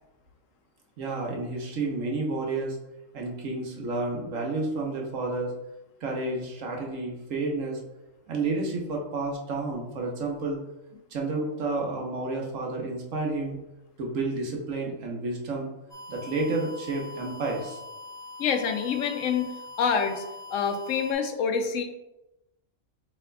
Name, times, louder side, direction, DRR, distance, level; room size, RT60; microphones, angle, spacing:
voice 1, 1.0-2.8 3.1-5.5 6.0-7.8 8.3-10.6 11.1-13.6 14.0-15.7 16.1-17.8, right 3 dB, 70° right, 0 dB, 1.2 m, -30 dB
sound 1, 15.9-21.1, left 2 dB, 5° left, 0.5 m, -43 dB
voice 2, 18.4-19.5 19.8-20.2 20.5-21.8, left 6 dB, 75° left, 6 dB, 0.9 m, -26 dB
7.0 x 3.4 x 2.2 m, 0.94 s
omnidirectional pair, 1.4 m